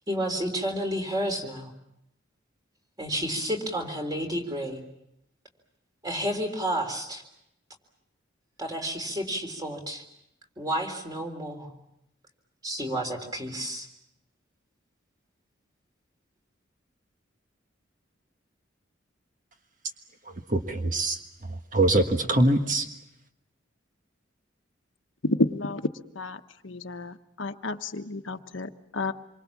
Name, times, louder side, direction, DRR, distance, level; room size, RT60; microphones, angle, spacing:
voice 1, 0.1-1.7 3.0-4.8 6.0-7.2 8.6-10.0 10.6-11.7 12.6-13.9, equal, 20° right, 4 dB, 3.6 m, -31 dB
voice 2, 20.5-21.2 21.5-22.9, right 1 dB, 40° right, 5 dB, 1.5 m, -23 dB
voice 3, 25.2-25.9 26.1-29.1, left 2 dB, 80° left, 8 dB, 1.2 m, -30 dB
27.0 x 24.0 x 7.3 m, 0.83 s
head